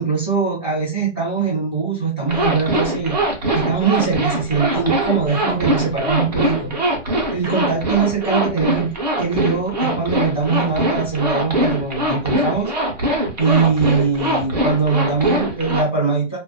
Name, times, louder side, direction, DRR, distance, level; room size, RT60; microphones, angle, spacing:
voice 1, 0.0-3.2 3.5-6.8 7.3-8.9 9.2-12.7 13.4-16.4, right 5 dB, 15° left, -14 dB, 0.5 m, -21 dB
Zipper (clothing), 2.3-15.8, right 1 dB, 35° right, 0.5 m, -22 dB
2.3 x 2.1 x 2.6 m, 0.30 s
hypercardioid pair, 180°, 37 cm